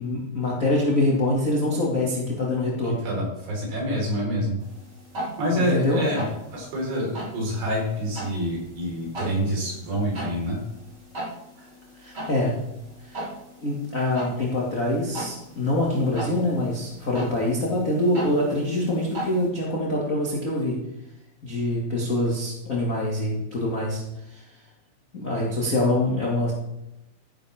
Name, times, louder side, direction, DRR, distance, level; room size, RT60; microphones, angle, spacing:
voice 1, 0.0-3.0 5.5-6.0 12.0-12.5 13.1-13.2 13.6-20.8 21.4-24.0 24.3-24.4 25.1-26.5, left 1 dB, 30° left, -4 dB, 1.5 m, -25 dB
voice 2, 2.8-4.6 5.4-6.3 6.5-10.6 11.6-11.7, equal, 85° right, -2 dB, 6.6 m, -27 dB
sound 1, 4.6-19.5, right 1 dB, 25° right, 3.5 m, -39 dB
14.0 x 11.0 x 3.6 m, 0.91 s
omnidirectional pair, 4.8 m